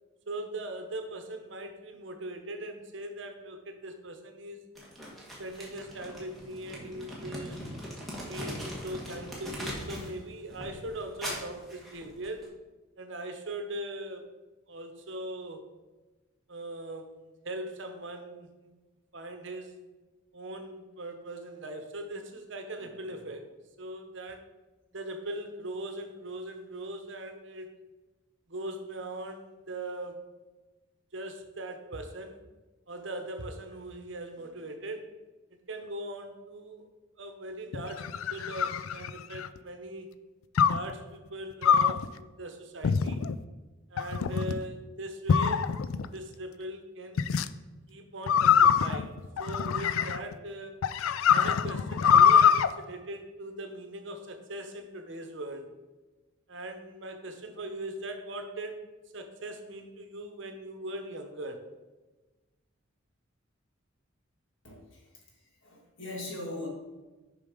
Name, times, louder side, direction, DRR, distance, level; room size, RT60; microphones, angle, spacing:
voice 1, 0.3-4.6 5.4-7.6 8.3-12.4 13.0-14.2 14.7-15.7 16.5-18.8 19.1-19.8 20.3-23.5 23.8-24.4 24.9-27.7 28.5-30.2 31.1-32.4 32.9-35.1 35.7-36.9 37.2-40.1 40.7-43.3 43.9-45.6 46.1-47.2 47.9-50.8 51.3-55.7 56.5-58.9 59.1-61.7, right 1 dB, 60° right, 6 dB, 0.9 m, -40 dB
Crumpling crinkling, 4.7-10.1 10.5-12.4, equal, ahead, 1.6 m, -41 dB
sound 1, 37.7-39.6 40.6-40.9 41.6-42.1 42.8-43.4 44.0-44.6 45.3-46.1 47.2-47.5 48.3-50.3 50.8-52.7, left 7 dB, 85° left, 0.4 m, -24 dB
voice 2, 64.6-66.7, left 2 dB, 60° left, -1 dB, 2.0 m, -41 dB
6.7 x 5.2 x 5.1 m, 1.2 s
head